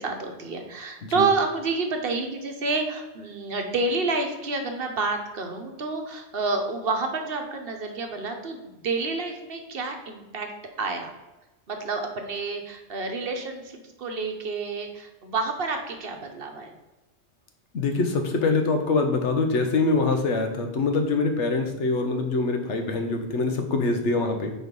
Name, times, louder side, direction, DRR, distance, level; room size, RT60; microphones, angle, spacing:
voice 1, 0.0-10.5 10.8-11.1 11.7-16.7, right 3 dB, 60° right, 4 dB, 1.0 m, -29 dB
voice 2, 17.7-24.5, left 3 dB, 85° left, 5 dB, 1.2 m, -24 dB
4.6 x 4.4 x 5.2 m, 1.1 s
omnidirectional pair, 1.2 m